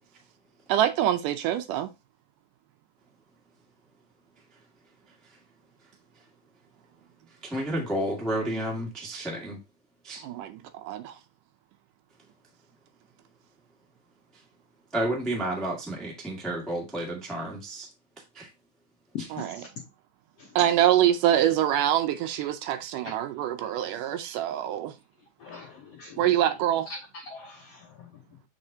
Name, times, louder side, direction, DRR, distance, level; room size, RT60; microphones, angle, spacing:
voice 1, 0.7-1.9 10.2-11.2 19.3-19.6 20.6-24.9 26.2-26.9, right 11 dB, 80° right, 2.0 m, -25 dB
voice 2, 7.4-9.6 10.0-10.2 14.9-17.9 18.3-18.5 19.2-19.3, right 1 dB, ahead, 0.5 m, -31 dB
voice 3, 19.1-19.7 20.4-20.5 25.4-26.2 27.1-28.2, left 7 dB, 75° left, 1.4 m, -42 dB
7.6 x 5.0 x 2.7 m
omnidirectional pair, 4.0 m